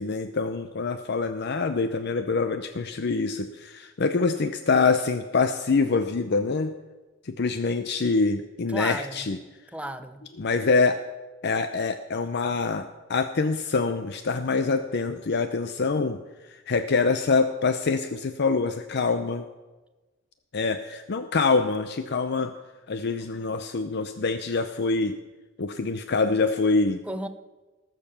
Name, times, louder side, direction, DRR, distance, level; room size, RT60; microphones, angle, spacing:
voice 1, 0.0-6.7 7.2-9.4 10.4-11.0 11.4-16.2 16.5-19.4 20.5-22.5 22.9-25.2 25.6-27.0, left 4 dB, 60° left, 9 dB, 0.6 m, -25 dB
voice 2, 8.7-9.3 9.7-10.3 27.0-27.3, right 1 dB, 5° right, 9 dB, 0.7 m, -34 dB
18.5 x 6.9 x 7.0 m, 1.2 s
head